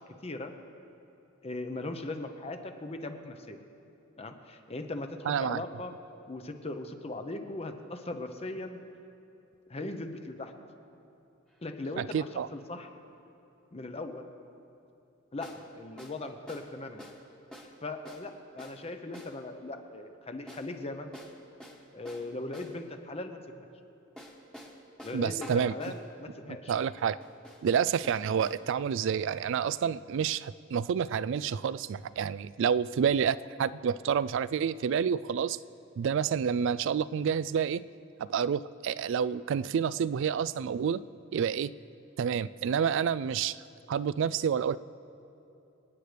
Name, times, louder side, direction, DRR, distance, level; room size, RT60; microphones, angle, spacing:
voice 1, 1.4-3.6 4.2-5.9 6.3-8.8 9.7-10.5 11.6-12.9 13.7-14.2 15.3-17.0 17.8-21.1 21.9-23.7 25.0-26.7, left 2 dB, 30° left, 6 dB, 0.8 m, -39 dB
voice 2, 5.3-5.6 12.0-12.5 25.1-25.7 26.7-27.2 27.6-35.6 36.0-37.8 38.2-41.0 41.3-41.7 42.2-43.6 43.9-44.8, right 7 dB, 60° right, 17 dB, 0.3 m, -29 dB
sound 1, 11.5-11.6 15.4-15.6 16.0-16.2 16.5-16.7 17.0-17.2 17.5-17.7 18.1-18.3 18.6-18.8 19.1-19.4 20.5-20.7 21.1-22.8 24.2-26.0 26.8-28.6, equal, 5° left, 1.3 m, -48 dB
26.0 x 9.4 x 3.4 m, 2.9 s
head